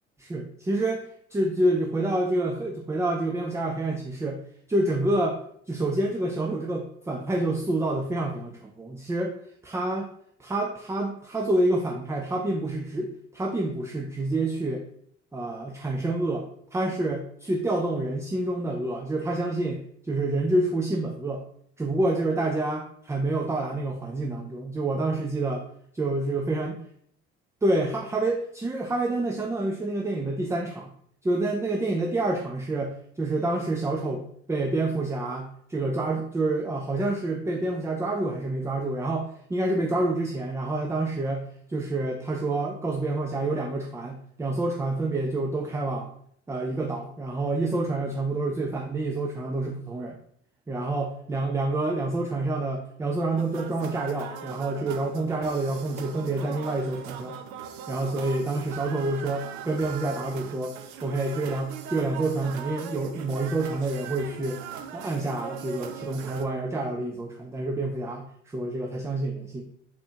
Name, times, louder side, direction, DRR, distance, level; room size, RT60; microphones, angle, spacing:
voice 1, 0.2-1.0 1.3-4.4 4.7-5.4 5.7-9.3 9.6-10.1 10.4-14.8 15.3-21.4 21.8-25.6 26.0-26.7 27.6-30.9 31.2-46.1 46.5-50.2 50.7-57.4 57.9-60.8 61.0-64.6 64.9-69.6, right 2 dB, 10° right, 2 dB, 0.4 m, -28 dB
sound 1, 53.4-66.5, right 8 dB, 70° right, 0.5 m, -40 dB
4.2 x 2.9 x 3.4 m, 0.66 s
hypercardioid pair, 55°, 35 cm